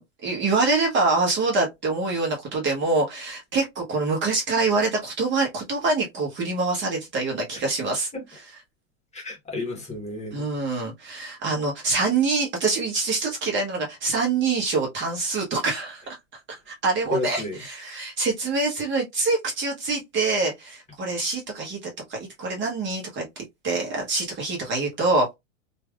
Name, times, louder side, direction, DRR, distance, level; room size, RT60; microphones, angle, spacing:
voice 1, 0.0-8.1 10.3-16.0 16.5-25.3, right 3 dB, 30° right, 1.1 m, -25 dB
voice 2, 9.1-10.5 17.1-17.6, left 1 dB, 15° left, 1.3 m, -31 dB
3.0 x 2.6 x 2.3 m
hypercardioid pair, 110°, 39 cm